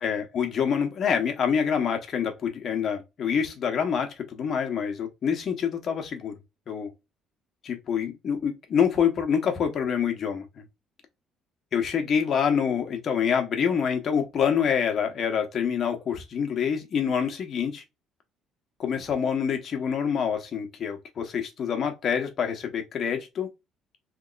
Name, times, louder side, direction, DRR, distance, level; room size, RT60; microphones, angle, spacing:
voice 1, 0.0-6.4 6.7-6.9 7.6-10.6 11.7-17.8 18.8-23.5, left 7 dB, 45° left, 1.1 m, -26 dB
3.5 x 3.1 x 2.4 m
cardioid pair, 125°, 0 cm